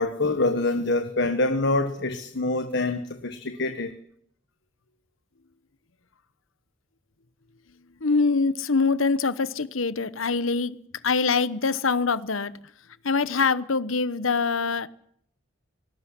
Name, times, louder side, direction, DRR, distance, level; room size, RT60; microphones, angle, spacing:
voice 1, 0.0-3.9, left 2 dB, 60° left, 8 dB, 1.5 m, -25 dB
voice 2, 8.0-10.8 11.0-12.5 13.0-14.9, left 4 dB, 80° left, 15 dB, 1.1 m, -24 dB
19.0 x 18.0 x 9.9 m, 0.68 s
head